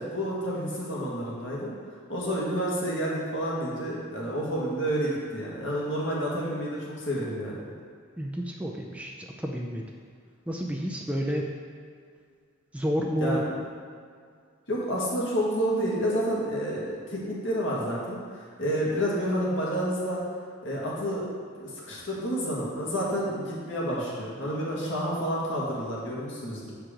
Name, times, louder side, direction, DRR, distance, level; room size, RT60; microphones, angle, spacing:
voice 1, 0.0-1.7 2.1-7.6 13.2-13.4 14.7-20.2 20.6-21.3 21.6-26.7, equal, 65° left, -5 dB, 1.8 m, -29 dB
voice 2, 8.2-9.9 10.5-11.5 12.7-13.6, equal, 5° right, -1 dB, 0.5 m, -30 dB
7.3 x 4.6 x 5.1 m, 2.1 s
head